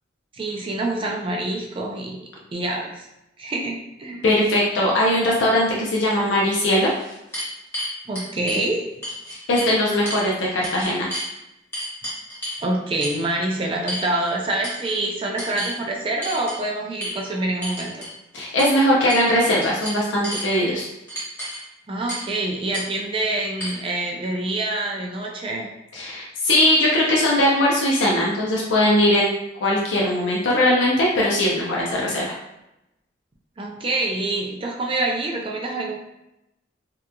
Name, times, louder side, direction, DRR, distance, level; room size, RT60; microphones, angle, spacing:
voice 1, 0.3-2.2 2.5-3.1 3.4-4.2 8.1-8.9 12.6-18.0 21.9-25.7 33.6-36.0, right 2 dB, 30° right, -1 dB, 0.4 m, -26 dB
voice 2, 4.2-6.9 9.5-11.1 18.3-20.9 25.9-29.3 29.6-32.3, left 1 dB, 85° left, -4 dB, 0.5 m, -20 dB
sound 1, 6.8-8.6 9.0-9.7 10.1-10.3 10.6-11.3 11.7-12.6 13.0-13.2 13.9-14.3 14.6-15.0 15.4-15.8 16.2-16.6 17.0-17.1 17.6-18.1 18.6-18.7 19.1-19.3 19.6-20.5 21.1-21.6 22.1-22.3 22.7-22.9 23.6-23.7, equal, 15° left, 1.0 m, -31 dB
2.8 x 2.4 x 2.2 m, 0.89 s
head